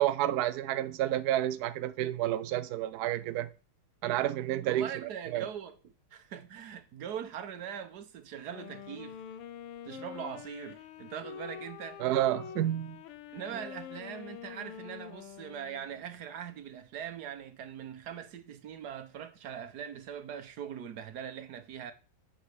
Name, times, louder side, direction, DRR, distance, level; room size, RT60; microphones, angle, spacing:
voice 1, 0.0-3.5 4.0-5.5 12.0-13.0, right 13 dB, 90° right, 0.8 m, -30 dB
voice 2, 4.6-9.2 9.8-12.0 13.3-21.9, right 8 dB, 60° right, 1.3 m, -41 dB
Wind instrument woodwind instrument, 8.4-16.1, left 9 dB, 85° left, 1.6 m, -46 dB
7.3 x 5.2 x 6.6 m
omnidirectional pair, 2.3 m